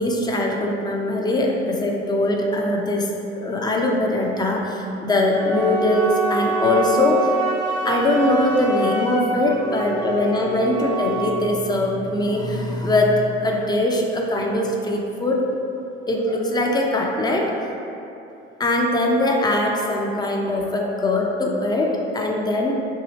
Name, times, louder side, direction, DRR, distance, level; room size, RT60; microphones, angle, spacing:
voice 1, 0.0-7.4 7.8-15.4 16.1-17.7 18.6-22.7, left 1 dB, 15° left, 0 dB, 0.5 m, -21 dB
Wind instrument woodwind instrument, 5.3-11.4, right 3 dB, 75° right, 0.7 m, -26 dB
2.8 x 2.7 x 4.1 m, 2.8 s
hypercardioid pair, 60°, 31 cm